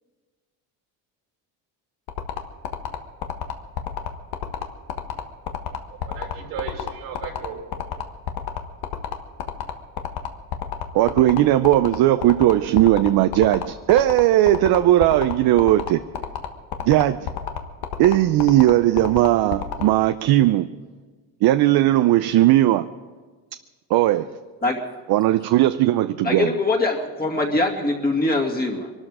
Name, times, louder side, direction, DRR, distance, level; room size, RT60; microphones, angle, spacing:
sound 1, 2.1-19.8, left 10 dB, 70° left, 1.5 m, -29 dB
voice 1, 5.7-7.8, right 7 dB, 90° right, 0 dB, 3.5 m, -36 dB
voice 2, 10.9-16.0 16.8-17.3 18.0-20.7 21.4-22.9 23.9-24.3 25.1-26.5, right 14 dB, 65° right, 11 dB, 0.6 m, -17 dB
voice 3, 26.2-28.9, left 2 dB, 25° left, 1 dB, 2.3 m, -22 dB
23.0 x 12.5 x 4.9 m, 1.4 s
cardioid pair, 115°, 39 cm